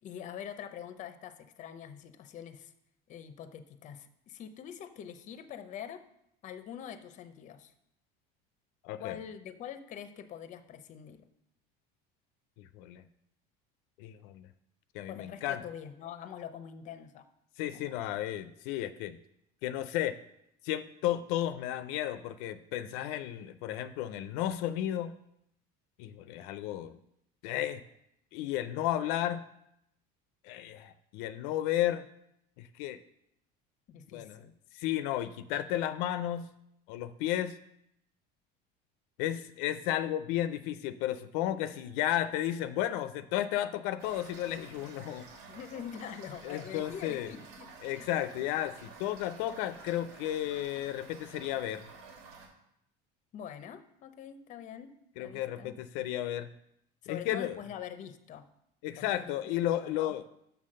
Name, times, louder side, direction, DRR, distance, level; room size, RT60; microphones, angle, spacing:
voice 1, 0.0-2.7 3.1-6.1 6.4-7.7 9.0-11.3 15.1-17.3 17.7-18.0 33.9-34.5 45.5-47.8 53.3-54.9 55.2-55.7 57.0-58.5 59.0-59.1 59.8-60.2, left 9 dB, 40° left, 11 dB, 0.7 m, -44 dB
voice 2, 8.8-9.2 12.6-13.1 14.0-14.5 14.9-15.6 17.6-19.2 19.6-20.2 20.6-25.1 26.0-27.0 27.4-27.8 28.3-29.4 30.4-32.0 32.6-33.0 34.1-34.4 34.7-36.5 36.9-37.6 39.2-45.2 46.4-47.3 47.8-51.9 55.2-56.5 57.1-57.6 58.8-60.3, left 12 dB, 80° left, 12 dB, 0.5 m, -33 dB
Toilet flush / Fill (with liquid), 44.0-52.5, right 4 dB, 90° right, 2.7 m, -51 dB
7.0 x 5.7 x 6.4 m, 0.78 s
cardioid pair, 150°, 21 cm